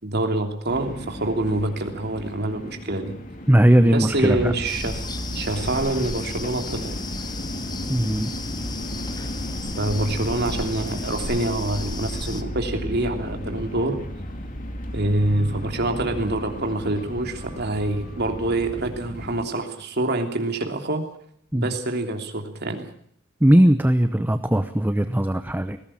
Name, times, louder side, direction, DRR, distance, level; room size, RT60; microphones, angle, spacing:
voice 1, 0.0-3.1 3.9-7.2 9.8-13.9 14.9-21.1 21.5-22.9, right 2 dB, 55° right, 4 dB, 3.1 m, -26 dB
sound 1, 0.7-19.4, equal, 45° left, 2.7 m, -34 dB
voice 2, 3.5-4.5 7.9-8.3 21.5-21.7 23.4-25.8, right 1 dB, 10° right, 10 dB, 0.8 m, -18 dB
sound 2, 4.6-12.4, left 3 dB, 20° left, 1.4 m, -35 dB
20.0 x 17.0 x 8.8 m, 0.66 s
head